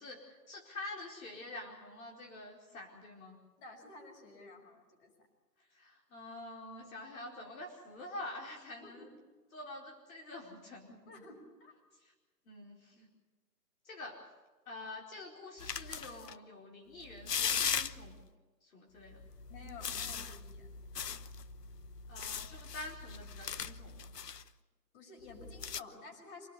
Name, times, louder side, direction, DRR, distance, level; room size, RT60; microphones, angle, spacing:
voice 1, 0.0-3.4 5.7-9.1 9.5-11.2 12.0-12.1 12.5-13.1 13.8-14.2 14.7-18.2 18.6-19.3 22.1-24.1, left 2 dB, 55° left, -1 dB, 4.7 m, -47 dB
voice 2, 3.6-5.3 8.8-8.9 11.1-11.7 19.5-20.7 24.9-26.5, left 3 dB, 35° left, 4 dB, 6.1 m, -52 dB
sound 1, 15.6-16.3 17.0-18.2 19.1-24.4 25.3-25.8, left 7 dB, 75° left, 1.1 m, -39 dB
27.0 x 18.0 x 8.3 m, 1.3 s
figure-of-eight pair, 140°, 49 cm